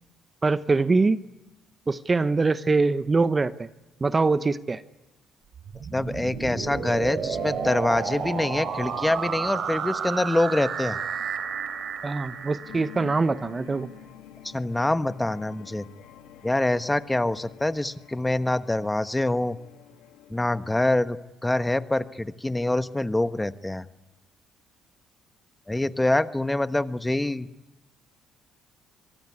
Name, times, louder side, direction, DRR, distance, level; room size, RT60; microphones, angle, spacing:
voice 1, 0.4-1.2 1.9-3.7 4.0-4.8 12.0-13.9, right 3 dB, 30° right, 14 dB, 0.9 m, -23 dB
sound 1, 5.5-13.5, right 6 dB, 60° right, 3.5 m, -32 dB
voice 2, 5.9-11.0 14.5-15.9 16.4-19.6 20.3-21.2 21.4-23.9 25.7-27.5, left 1 dB, 10° left, 12 dB, 1.2 m, -25 dB
sound 2, 7.2-20.5, left 10 dB, 80° left, 2.1 m, -48 dB
25.0 x 22.5 x 9.7 m, 1.0 s
supercardioid pair, 65°, 0 cm